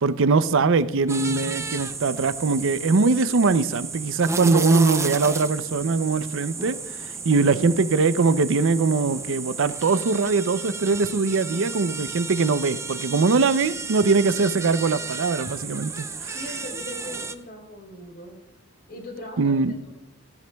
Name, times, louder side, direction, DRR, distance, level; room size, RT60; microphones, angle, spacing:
voice 1, 0.0-16.3 19.4-19.7, right 4 dB, 65° right, 14 dB, 0.5 m, -22 dB
sound 1, 1.1-17.3, right 4 dB, 15° right, 0.5 m, -32 dB
voice 2, 7.3-7.9 16.2-18.4 18.9-19.5 19.8-19.9, equal, 50° left, 1 dB, 3.9 m, -39 dB
16.0 x 15.5 x 2.3 m, 0.91 s
head